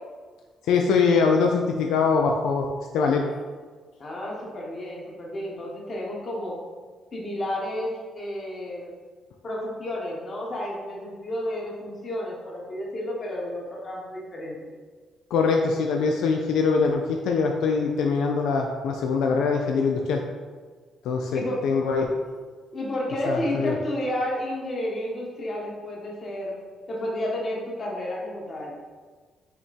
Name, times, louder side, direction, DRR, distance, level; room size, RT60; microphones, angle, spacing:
voice 1, 0.7-2.7 2.9-3.2 15.3-20.2 21.0-22.1 23.3-23.7, left 5 dB, 85° left, 2 dB, 0.3 m, -23 dB
voice 2, 4.0-6.6 7.1-8.9 9.4-14.6 21.3-21.6 22.7-26.6 26.9-28.7, left 1 dB, 40° left, -3 dB, 1.3 m, -31 dB
5.7 x 2.2 x 4.2 m, 1.5 s
cardioid pair, 90°, 0 cm